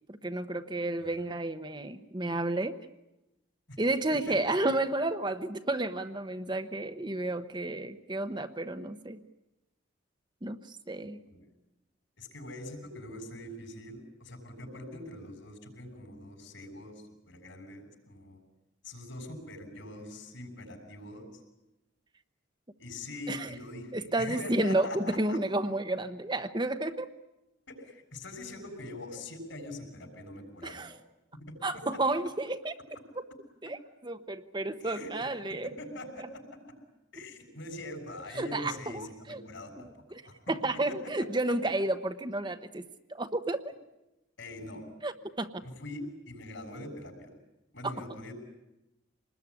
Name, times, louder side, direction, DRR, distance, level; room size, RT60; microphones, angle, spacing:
voice 1, 0.1-2.7 3.8-9.2 10.4-11.2 23.3-23.5 23.9-27.1 30.6-30.9 31.6-32.7 33.6-35.7 38.3-39.4 40.1-40.2 40.5-42.8 43.1-43.6 45.0-45.5, right 2 dB, 20° right, 8 dB, 0.9 m, -31 dB
voice 2, 4.3-4.7 11.3-11.5 12.2-16.9 17.3-18.4 18.8-21.2 22.8-25.4 27.7-30.9 31.7-31.8 34.8-35.1 35.6-36.4 37.1-40.3 44.4-44.8 45.6-47.3 47.7-48.3, left 1 dB, 70° left, 6 dB, 6.6 m, -43 dB
26.5 x 20.5 x 9.7 m, 0.95 s
head